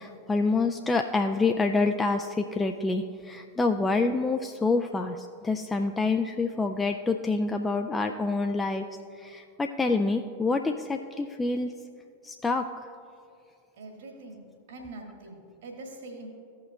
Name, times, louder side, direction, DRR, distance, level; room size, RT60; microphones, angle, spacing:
voice 1, 0.0-8.9 9.1-11.7 12.2-12.7, left 3 dB, 10° left, 4 dB, 0.3 m, -27 dB
voice 2, 13.8-14.4 14.7-16.3, right 2 dB, 60° right, 2 dB, 1.6 m, -43 dB
15.0 x 5.6 x 2.3 m, 2.5 s
figure-of-eight pair, 90°, 0 cm